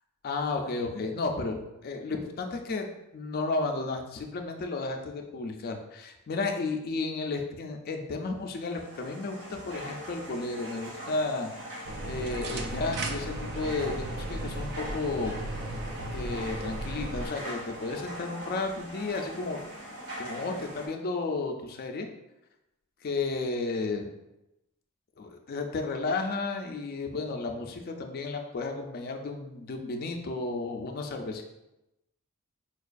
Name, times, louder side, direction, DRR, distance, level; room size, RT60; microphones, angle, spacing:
voice 1, 0.2-2.9 3.1-9.4 9.7-11.5 12.0-15.3 16.1-19.6 20.2-22.1 23.0-24.1 25.2-31.4, left 3 dB, 45° left, 4 dB, 0.3 m, -33 dB
sound 1, 8.5-20.9, equal, 80° right, 1.2 m, -42 dB
sound 2, 11.8-17.3, right 1 dB, 50° right, 0.3 m, -35 dB
4.5 x 2.3 x 2.4 m, 0.93 s
head